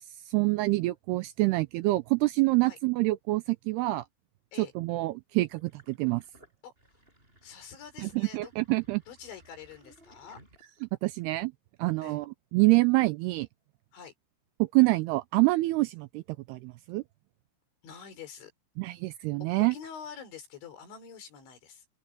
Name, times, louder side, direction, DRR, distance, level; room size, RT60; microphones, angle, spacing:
voice 1, 0.3-4.1 4.6-6.2 8.0-9.0 10.8-11.5 11.8-13.5 14.6-16.2 16.5-17.0 18.8-19.7, right 21 dB, 85° right, 2.4 m, -26 dB
Sink (filling or washing), 5.5-11.1, right 1 dB, 10° right, 7.7 m, -60 dB
voice 2, 7.4-8.5 9.1-10.4 12.0-12.2 13.9-14.1 17.8-18.5 19.4-21.8, left 7 dB, 85° left, 6.6 m, -46 dB
open air
omnidirectional pair, 5.2 m